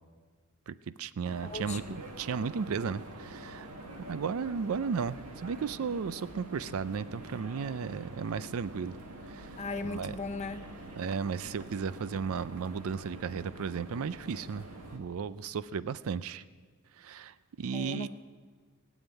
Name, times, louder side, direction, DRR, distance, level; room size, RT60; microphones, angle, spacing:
voice 1, 0.7-3.7 4.1-8.9 9.3-9.5 9.8-10.2 11.0-14.7 14.9-16.4 17.0-18.1, right 6 dB, 65° right, 16 dB, 0.4 m, -34 dB
sound 1, 1.3-15.0, right 1 dB, 90° right, 1.9 m, -46 dB
voice 2, 1.4-2.0 9.6-10.7 17.7-18.1, left 3 dB, 30° left, 10 dB, 0.6 m, -37 dB
19.0 x 7.3 x 9.1 m, 1.5 s
head